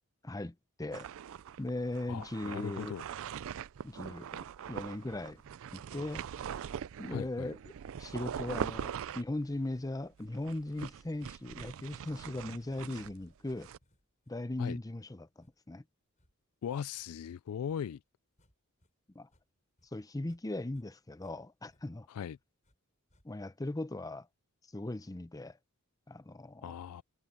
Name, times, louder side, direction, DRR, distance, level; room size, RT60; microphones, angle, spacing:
voice 1, 0.2-1.1 1.6-3.0 3.8-4.3 4.7-5.4 5.7-6.2 7.0-7.6 8.0-8.9 9.2-13.7 14.3-15.8 19.1-19.3 19.9-22.1 23.2-24.3 24.7-25.6 26.1-26.7, left 1 dB, 15° left, 0.6 m, -38 dB
sound 1, 0.9-13.8, right 8 dB, 65° right, 0.4 m, -42 dB
voice 2, 2.1-3.0 7.1-7.5 14.6-14.8 16.6-18.0 22.1-22.4 26.6-27.0, left 8 dB, 70° left, 0.3 m, -39 dB
sound 2, 4.3-4.8 5.3-5.8 6.3-18.9 19.2-20.4 20.7-22.8 23.1-23.6, left 1 dB, 35° left, 6.3 m, -73 dB
head